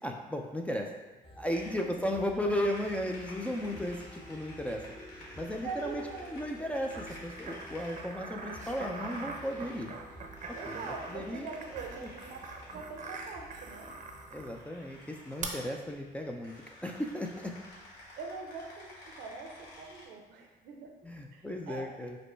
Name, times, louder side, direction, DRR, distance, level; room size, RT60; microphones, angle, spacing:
voice 1, 0.0-0.9 1.4-4.8 5.4-6.0 6.3-9.9 10.5-11.5 12.0-12.1 14.3-16.5 16.8-17.5 21.0-22.2, equal, 10° left, 2 dB, 0.4 m, -35 dB
sound 1, 1.2-14.6, equal, 30° left, 1.0 m, -51 dB
sound 2, 1.5-20.1, left 1 dB, 70° left, 1.5 m, -52 dB
voice 2, 5.6-6.3 10.5-13.9 15.5-15.6 18.2-20.9 21.3-21.8, right 4 dB, 85° right, 2 dB, 0.7 m, -43 dB
sound 3, 6.9-14.6 15.4-15.5, right 4 dB, 45° right, 0.6 m, -43 dB
5.1 x 2.1 x 4.4 m, 1.1 s
cardioid pair, 110°, 17 cm